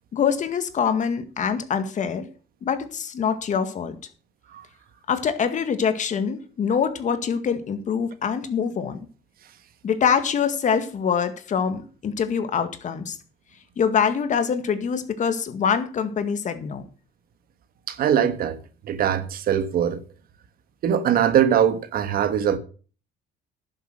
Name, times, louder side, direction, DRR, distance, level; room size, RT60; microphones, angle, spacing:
voice 1, 0.1-2.3 2.6-4.0 5.1-9.0 9.8-13.2 13.8-16.9, left 7 dB, 45° left, 1.8 m, -24 dB
voice 2, 17.9-18.6 18.8-20.0 20.8-22.6, right 9 dB, 60° right, 1.4 m, -21 dB
11.0 x 7.5 x 6.5 m
cardioid pair, 110°, 17 cm